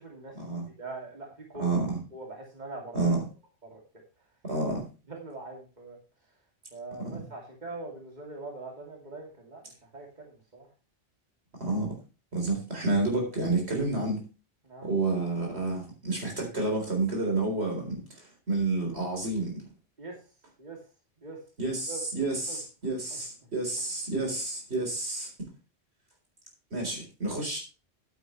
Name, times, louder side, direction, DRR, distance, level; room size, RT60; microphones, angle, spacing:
voice 1, 0.0-0.4 0.8-1.7 2.1-3.1 3.6-3.8 5.1-6.0 6.7-10.7 14.6-14.9 20.0-20.2 20.6-20.8 21.2-21.4 21.9-22.0 22.5-22.6 23.1-23.2 27.3-27.4, right 2 dB, 45° right, 0 dB, 2.8 m, -42 dB
voice 2, 1.5-2.0 2.9-3.2 4.4-4.8 7.0-7.2 11.6-11.9 12.3-14.2 14.8-19.7 21.6-25.5 26.7-27.6, right 2 dB, 85° right, 1 dB, 4.3 m, -30 dB
11.5 x 9.3 x 3.2 m, 0.32 s
omnidirectional pair, 1.1 m